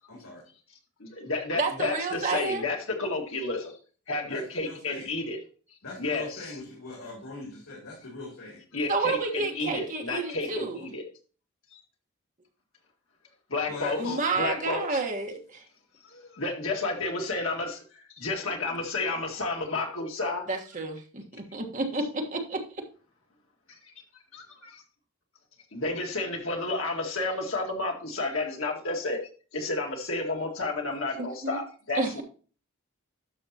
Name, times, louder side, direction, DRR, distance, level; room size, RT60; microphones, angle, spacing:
voice 1, 0.1-0.4 4.3-5.1 5.8-8.6 13.7-14.2, left 3 dB, 80° left, -4 dB, 3.1 m, -40 dB
voice 2, 1.0-3.7 4.1-5.4 6.0-6.5 8.7-11.0 11.7-11.8 13.5-15.0 16.1-20.5 24.3-24.8 25.7-29.2 29.5-32.2, left 2 dB, 65° left, 2 dB, 2.0 m, -31 dB
voice 3, 1.6-2.7 8.9-10.8 14.0-15.6 20.5-21.0 21.5-22.8 31.4-31.6 31.9-32.2, right 3 dB, 35° right, 3 dB, 1.3 m, -30 dB
12.0 x 6.4 x 2.8 m, 0.39 s
head